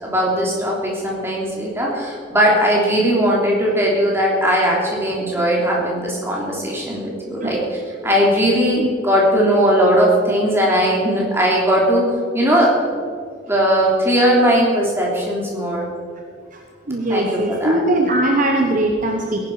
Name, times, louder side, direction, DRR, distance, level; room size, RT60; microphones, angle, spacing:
voice 1, 0.0-7.6 8.0-13.0 13.5-15.9 17.1-17.8, equal, 10° right, -4 dB, 3.2 m, -18 dB
voice 2, 16.9-19.5, right 1 dB, 40° right, 2 dB, 1.1 m, -20 dB
17.5 x 11.5 x 4.9 m, 2.2 s
head